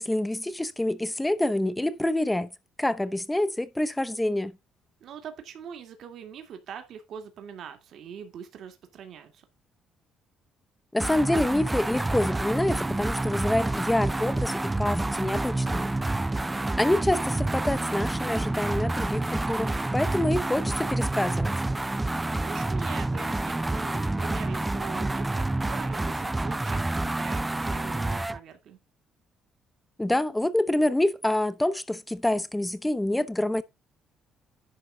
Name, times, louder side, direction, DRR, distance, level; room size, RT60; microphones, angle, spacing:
voice 1, 0.0-2.5 2.8-4.5 10.9-16.0 16.8-21.5 30.0-33.6, left 1 dB, 10° left, 0.8 m, -27 dB
voice 2, 5.0-9.5 15.0-15.8 22.4-28.8, right 8 dB, 65° right, 2.2 m, -43 dB
sound 1, 11.0-28.4, right 2 dB, 15° right, 0.4 m, -28 dB
11.0 x 3.9 x 6.2 m
cardioid pair, 95°, 0 cm